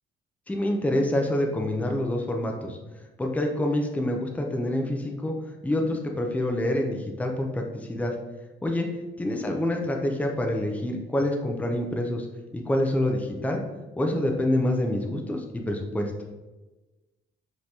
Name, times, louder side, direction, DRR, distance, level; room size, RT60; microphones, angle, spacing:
voice 1, 0.5-2.8 3.2-5.3 5.6-8.1 8.6-8.9 9.2-12.3 12.5-13.6 14.0-16.1, left 1 dB, 5° left, 2 dB, 0.5 m, -26 dB
4.9 x 3.0 x 2.8 m, 1.1 s
cardioid pair, 90°, 20 cm